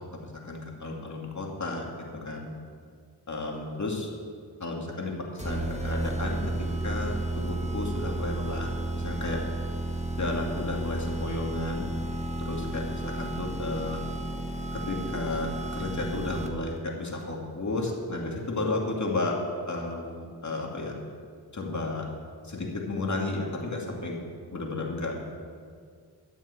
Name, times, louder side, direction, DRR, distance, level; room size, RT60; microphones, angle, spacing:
voice 1, 0.1-2.5 3.3-4.1 4.6-9.4 10.2-11.9 12.4-14.0 14.7-19.4 19.7-20.9 21.5-22.0 22.4-24.2 24.5-25.1, left 2 dB, 45° left, -1 dB, 2.6 m, -33 dB
sound 1, 5.4-16.8, right 1 dB, 15° right, 1.4 m, -32 dB
13.0 x 7.2 x 8.4 m, 2.1 s
wide cardioid pair, 75°, 41 cm